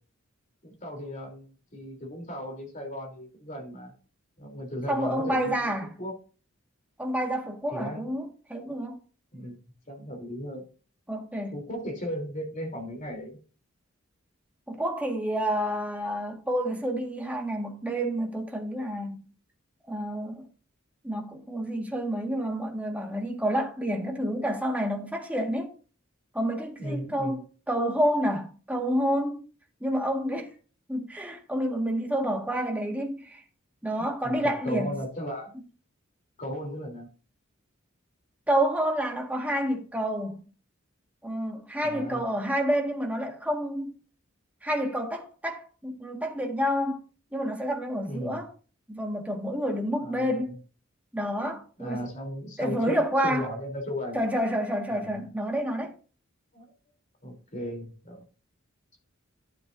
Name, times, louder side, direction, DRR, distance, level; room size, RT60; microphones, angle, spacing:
voice 1, 0.6-3.9 4.4-5.7 6.0-6.2 7.7-8.0 9.3-10.6 11.5-13.4 26.8-27.4 34.2-35.5 36.4-37.1 41.8-42.3 48.1-48.4 50.0-50.5 51.8-54.2 54.9-55.1 56.5-56.7 57.2-58.2, equal, 35° left, 3.4 m, -36 dB
voice 2, 4.9-5.9 7.0-9.0 11.1-11.6 14.7-19.2 19.9-20.5 21.0-25.7 26.3-29.4 29.8-30.5 30.9-33.4 33.8-35.0 38.5-40.4 41.2-44.0 44.6-47.1 47.3-48.5 48.9-50.6 51.1-52.0 52.6-53.5 54.1-55.9, equal, 5° right, 1.7 m, -29 dB
12.0 x 7.0 x 2.6 m
head